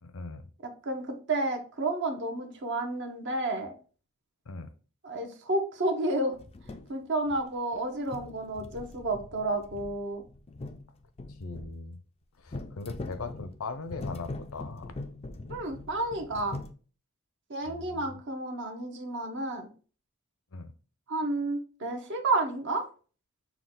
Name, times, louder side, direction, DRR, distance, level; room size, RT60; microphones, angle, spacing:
voice 1, 0.0-0.4 4.5-4.7 11.4-12.0 12.4-14.9 17.7-18.2 20.5-20.7, left 3 dB, 70° left, 10 dB, 0.6 m, -40 dB
voice 2, 0.8-3.7 5.0-6.3 6.9-10.2 15.5-16.6 17.5-19.7 21.1-22.8, right 2 dB, 55° right, 4 dB, 0.9 m, -31 dB
sound 1, 6.3-6.9 7.3-7.8 8.1-11.8 12.5-16.7, left 2 dB, 25° left, 0.4 m, -42 dB
5.8 x 2.3 x 3.7 m, 0.38 s
head